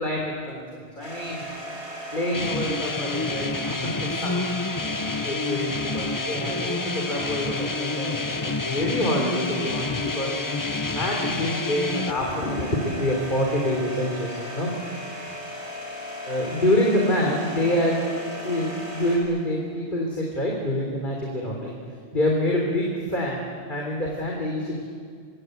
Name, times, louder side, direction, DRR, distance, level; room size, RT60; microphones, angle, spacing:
voice 1, 0.0-1.5 2.1-4.6 5.2-10.4 10.9-14.7 15.0-15.1 16.3-18.0 18.4-21.8 22.1-24.8, left 1 dB, 45° left, -2 dB, 3.8 m, -26 dB
sound 1, 1.0-19.2, equal, 75° right, 6.6 m, -37 dB
sound 2, 2.3-12.1, left 3 dB, 25° left, 0.5 m, -29 dB
26.0 x 23.5 x 8.1 m, 2.1 s
omnidirectional pair, 1.2 m